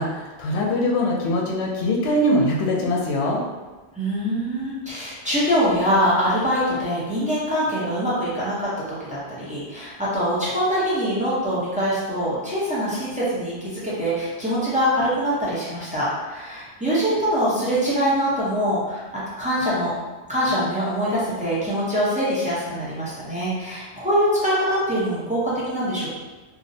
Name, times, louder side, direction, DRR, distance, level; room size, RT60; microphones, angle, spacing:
voice 1, 0.0-3.4, left 1 dB, 80° left, -2 dB, 0.8 m, -22 dB
voice 2, 4.0-19.0 19.4-19.9 20.3-26.1, equal, 10° right, -9 dB, 0.5 m, -23 dB
2.6 x 2.0 x 2.6 m, 1.2 s
omnidirectional pair, 1.1 m